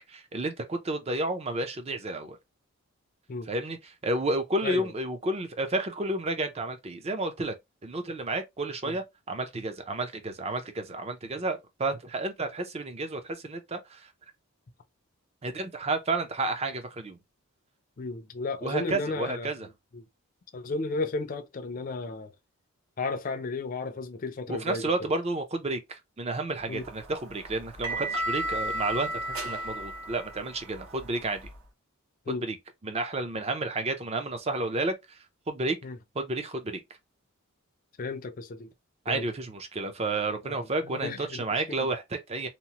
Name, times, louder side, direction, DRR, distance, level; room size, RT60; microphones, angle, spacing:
voice 1, 0.1-2.4 3.5-7.5 7.8-14.1 15.4-17.2 18.6-19.7 24.5-31.5 32.3-32.6 32.8-35.2 35.5-35.8 36.1-36.8 39.1-42.5, right 2 dB, 30° right, 0.5 m, -31 dB
voice 2, 18.0-19.5 19.9-20.1 20.5-22.3 23.0-25.1 26.7-26.8 32.3-32.5 35.8-36.0 38.0-38.7 39.1-39.3 40.4-41.4 41.8-41.9, left 3 dB, 35° left, 0.4 m, -34 dB
sound 1, 26.7-31.6, right 1 dB, 75° right, 1.3 m, -34 dB
2.9 x 2.0 x 2.8 m
head